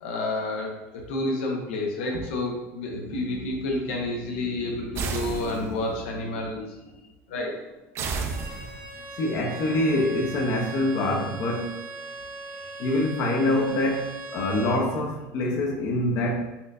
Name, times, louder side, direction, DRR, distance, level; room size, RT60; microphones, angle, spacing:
voice 1, 0.0-6.9 7.3-7.5 12.7-12.9, left 2 dB, 90° left, 0 dB, 0.8 m, -30 dB
sound 1, 5.0-6.0 8.0-9.0, right 4 dB, 40° right, 0.4 m, -32 dB
Bowed string instrument, 8.0-14.9, right 3 dB, 75° right, 1.0 m, -39 dB
voice 2, 9.1-11.7 12.8-16.4, left 1 dB, 50° left, -1 dB, 0.6 m, -25 dB
4.2 x 2.6 x 2.4 m, 1.0 s
supercardioid pair, 135°, 6 cm